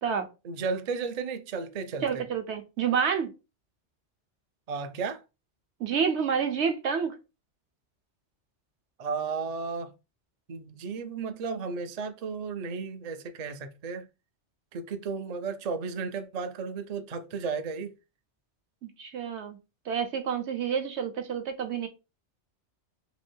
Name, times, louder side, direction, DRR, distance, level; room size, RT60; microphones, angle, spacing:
voice 1, 0.4-2.2 4.7-5.2 9.0-9.9 10.5-14.1 14.7-17.9, right 5 dB, 55° right, 0.4 m, -34 dB
voice 2, 2.0-3.3 5.8-7.2 19.0-19.6 19.9-21.9, right 7 dB, 70° right, 1.0 m, -28 dB
3.1 x 2.7 x 4.4 m
omnidirectional pair, 1.2 m